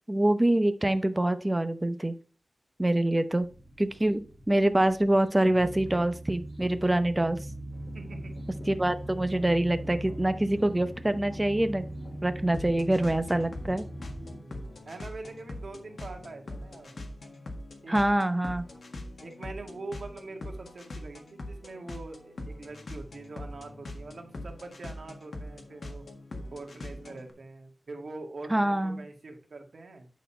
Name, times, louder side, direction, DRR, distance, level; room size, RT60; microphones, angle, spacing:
voice 1, 0.1-2.1 2.8-3.5 3.8-4.2 4.5-7.4 8.7-11.9 12.2-13.8 17.9-18.6 28.5-29.0, right 1 dB, 20° right, 10 dB, 0.8 m, -25 dB
sound 1, 3.4-14.4, right 1 dB, 10° left, 2.7 m, -41 dB
sound 2, 7.7-27.3, left 1 dB, 65° left, 1.6 m, -43 dB
voice 2, 7.9-8.4 14.4-17.0 17.8-18.0 19.2-26.1 26.5-30.1, right 3 dB, 65° right, 3 dB, 1.9 m, -43 dB
9.4 x 4.1 x 5.5 m, 0.37 s
wide cardioid pair, 85°, 0 cm